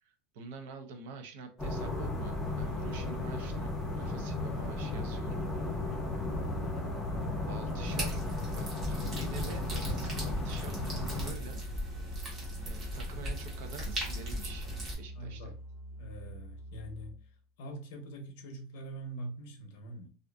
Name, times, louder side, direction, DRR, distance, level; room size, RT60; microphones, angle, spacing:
voice 1, 0.0-5.5 7.5-8.2 8.5-11.9 12.6-14.7 15.0-15.5, right 4 dB, 70° right, 0.5 m, -46 dB
sound 1, 1.6-11.3, left 2 dB, 5° left, 0.8 m, -35 dB
Musical instrument, 5.4-17.4, right 1 dB, 20° left, 0.4 m, -46 dB
sound 2, 7.8-14.9, equal, 25° right, 1.0 m, -38 dB
voice 2, 15.1-15.5 16.0-17.3 17.6-20.1, right 1 dB, 70° left, 0.6 m, -44 dB
2.5 x 2.4 x 2.2 m
supercardioid pair, 160°, 0 cm